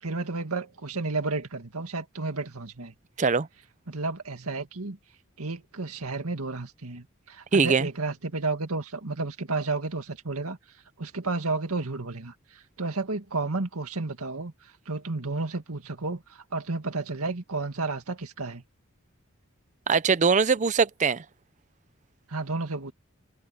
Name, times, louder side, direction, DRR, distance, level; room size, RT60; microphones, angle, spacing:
voice 1, 0.0-2.9 3.9-5.0 5.4-10.6 11.0-18.6 22.3-22.9, right 3 dB, 90° right, 2.1 m, -32 dB
voice 2, 7.5-7.9 19.9-21.2, right 5 dB, 35° right, 0.5 m, -22 dB
head